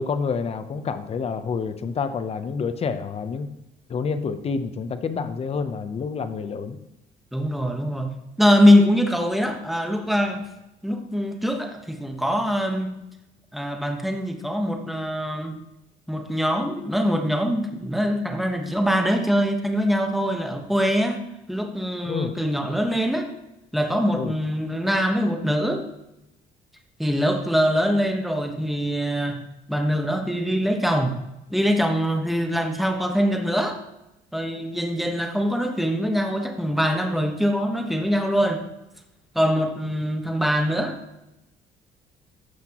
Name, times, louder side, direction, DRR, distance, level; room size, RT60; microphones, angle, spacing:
voice 1, 0.0-3.5 3.9-6.8 22.1-22.4 24.1-24.3, left 5 dB, 35° left, 10 dB, 0.8 m, -28 dB
voice 2, 7.3-10.4 10.8-13.0 13.5-15.6 16.1-21.2 21.5-23.3 23.7-25.9 27.0-29.4 29.7-31.2 31.5-33.8 34.3-38.6 39.3-41.0, equal, ahead, 4 dB, 1.2 m, -23 dB
14.5 x 5.9 x 3.0 m, 0.93 s
cardioid pair, 110°, 17 cm